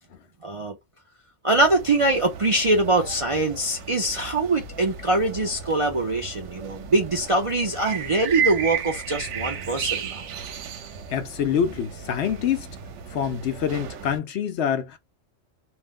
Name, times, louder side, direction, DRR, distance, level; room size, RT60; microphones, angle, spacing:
voice 1, 0.4-0.8 1.4-10.2, right 2 dB, 45° right, 0.4 m, -23 dB
sound 1, 1.5-14.2, right 7 dB, 75° right, 0.9 m, -34 dB
voice 2, 11.1-12.7 13.1-15.0, left 8 dB, 70° left, 0.8 m, -26 dB
2.5 x 2.1 x 3.4 m
omnidirectional pair, 1.3 m